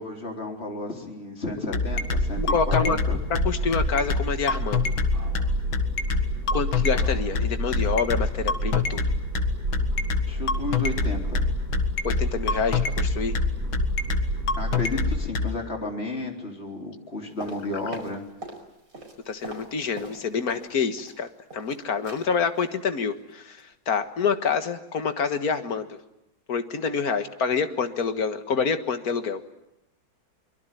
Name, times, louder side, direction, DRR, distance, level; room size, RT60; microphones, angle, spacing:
voice 1, 0.0-3.2 10.3-11.6 14.5-18.2, left 2 dB, 30° left, 3 dB, 4.1 m, -33 dB
sound 1, 1.5-15.5, left 5 dB, 75° left, 2.5 m, -25 dB
sound 2, 1.8-15.3, right 1 dB, 65° right, 6.6 m, -29 dB
voice 2, 2.4-3.0 3.5-4.8 6.5-9.1 12.0-13.3 19.3-26.0 26.5-29.4, left 5 dB, 50° left, 9 dB, 1.9 m, -27 dB
sound 3, 17.4-18.6 18.9-20.7 21.0-21.7 22.0-22.3 22.5-22.8 23.1-23.3 23.6-23.7, right 2 dB, 40° right, 5.6 m, -41 dB
24.0 x 23.0 x 9.2 m, 0.87 s
omnidirectional pair, 2.2 m